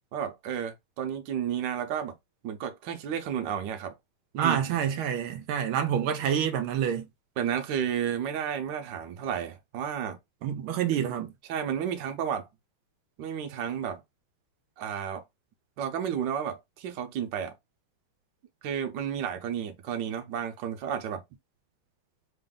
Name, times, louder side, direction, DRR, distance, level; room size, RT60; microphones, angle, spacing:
voice 1, 0.1-2.1 2.4-3.9 4.3-4.6 7.4-10.2 11.5-12.5 13.2-14.0 14.8-15.2 15.8-17.5 18.6-21.2, right 8 dB, 65° right, 1.3 m, -32 dB
voice 2, 4.4-7.1 10.4-11.3, right 9 dB, 80° right, 1.5 m, -27 dB
3.5 x 2.6 x 3.7 m
omnidirectional pair, 2.3 m